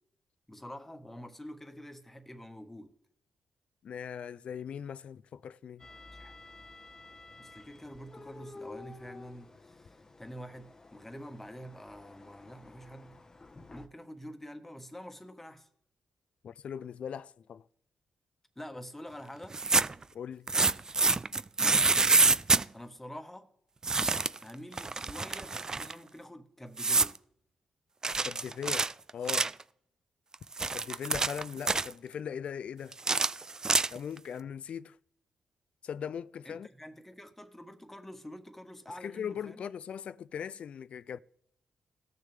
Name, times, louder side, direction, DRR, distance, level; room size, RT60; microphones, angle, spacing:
voice 1, 0.5-2.9 6.1-6.4 7.4-13.2 13.7-15.7 18.5-19.6 22.7-23.5 24.4-27.2 36.4-39.6, equal, 10° left, 1.3 m, -47 dB
voice 2, 3.8-5.9 16.4-17.6 20.1-20.5 28.3-28.9 29.1-29.5 30.7-33.0 33.9-35.0 35.8-36.7 39.0-41.2, left 8 dB, 65° left, 0.3 m, -39 dB
sound 1, 5.8-13.9, left 3 dB, 25° left, 0.8 m, -51 dB
sound 2, 19.4-20.0 20.5-22.6 23.8-24.4 24.7-25.9 26.8-27.2 28.0-29.6 30.3-31.9 32.9-34.2, right 3 dB, 30° right, 0.3 m, -27 dB
17.5 x 6.6 x 3.4 m
cardioid pair, 60°, 2 cm